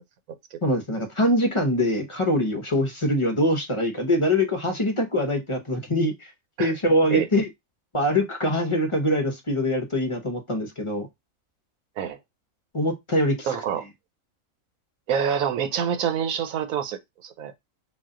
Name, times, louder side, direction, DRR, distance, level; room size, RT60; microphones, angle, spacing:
voice 1, 0.6-6.3 6.6-7.5 7.9-11.1 12.7-13.6, left 1 dB, 35° left, 0.5 m, -23 dB
voice 2, 13.5-13.8 15.1-17.0 17.2-17.5, right 8 dB, 85° right, 1.1 m, -26 dB
4.1 x 2.4 x 3.6 m
omnidirectional pair, 1.4 m